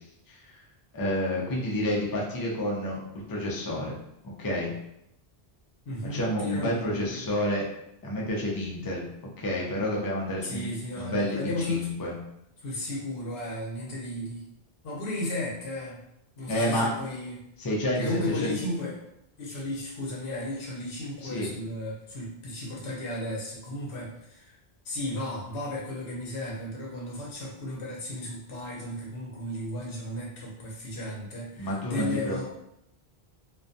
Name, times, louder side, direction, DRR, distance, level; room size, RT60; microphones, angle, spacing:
voice 1, 0.3-0.6 0.9-3.0 3.3-4.0 4.4-4.7 6.1-7.7 8.0-9.1 9.4-10.7 11.0-11.4 11.7-12.1 16.5-16.9 17.6-18.1 18.4-18.6 21.2-21.5 31.6-32.4, left 1 dB, 30° left, -3 dB, 0.4 m, -29 dB
voice 2, 5.8-7.3 10.4-11.9 12.6-14.4 14.8-16.0 16.4-17.4 17.9-19.0 19.4-24.5 24.8-32.4, left 1 dB, 65° left, -4 dB, 0.9 m, -34 dB
2.4 x 2.2 x 2.6 m, 0.80 s
omnidirectional pair, 1.1 m